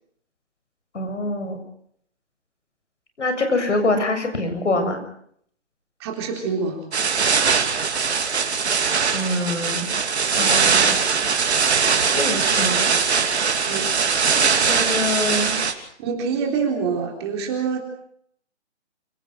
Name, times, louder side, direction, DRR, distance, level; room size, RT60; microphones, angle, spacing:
voice 1, 0.9-1.6 3.2-5.0 9.1-9.9 10.3-11.0 12.1-12.8 14.2-15.6, left 2 dB, 80° left, 7 dB, 7.7 m, -25 dB
voice 2, 6.0-6.8 13.7-13.9 16.0-17.8, right 5 dB, 20° right, 2 dB, 3.9 m, -25 dB
sound 1, 6.9-15.7, right 5 dB, 65° right, 3.1 m, -21 dB
28.5 x 17.5 x 6.4 m, 0.65 s
hypercardioid pair, 165°, 36 cm